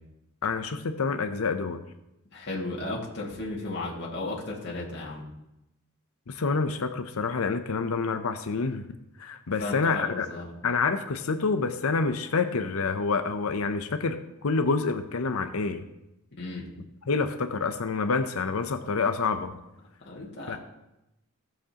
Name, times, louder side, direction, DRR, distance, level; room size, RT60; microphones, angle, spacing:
voice 1, 0.4-1.8 6.3-8.8 9.2-10.3 10.6-15.8 17.1-19.6 20.5-20.6, left 4 dB, 75° left, 8 dB, 0.7 m, -27 dB
voice 2, 2.3-5.2 9.6-10.5 16.3-16.7 20.0-20.6, left 2 dB, 50° left, -4 dB, 2.1 m, -34 dB
16.5 x 7.2 x 2.9 m, 0.91 s
head